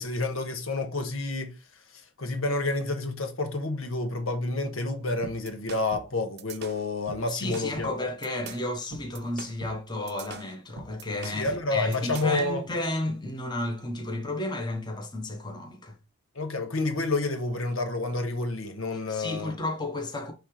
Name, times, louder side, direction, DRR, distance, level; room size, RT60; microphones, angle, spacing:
voice 1, 0.0-1.5 2.2-8.1 11.3-12.6 16.3-19.6, left 2 dB, 80° left, 1.5 m, -29 dB
sound 1, 5.2-12.5, right 4 dB, 50° right, 0.7 m, -43 dB
voice 2, 7.3-16.0 19.1-20.3, left 1 dB, 20° left, 1.3 m, -32 dB
9.7 x 3.5 x 3.3 m
head